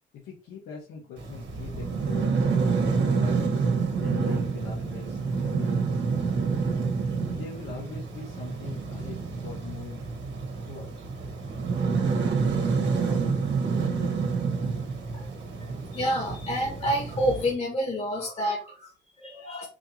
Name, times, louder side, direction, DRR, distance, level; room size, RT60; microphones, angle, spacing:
voice 1, 0.1-2.5 2.9-3.6 3.9-6.1 7.3-10.0 10.7-10.9, left 6 dB, 85° left, -4 dB, 1.4 m, -42 dB
sound 1, 1.2-17.5, right 5 dB, 65° right, 1.5 m, -28 dB
voice 2, 15.9-19.6, equal, 30° left, -2 dB, 1.7 m, -28 dB
4.9 x 3.0 x 2.8 m, 0.35 s
cardioid pair, 90°, 20 cm